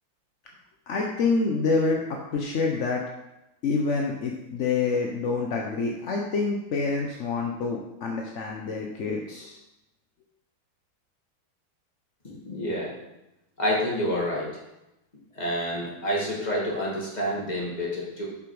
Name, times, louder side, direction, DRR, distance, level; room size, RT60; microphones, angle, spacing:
voice 1, 0.9-2.0 2.3-3.0 3.6-9.6, left 4 dB, 55° left, 0 dB, 0.8 m, -27 dB
voice 2, 12.2-12.9 13.6-14.5 15.4-18.3, equal, 20° left, -4 dB, 2.0 m, -28 dB
7.3 x 6.0 x 4.8 m, 0.94 s
omnidirectional pair, 2.2 m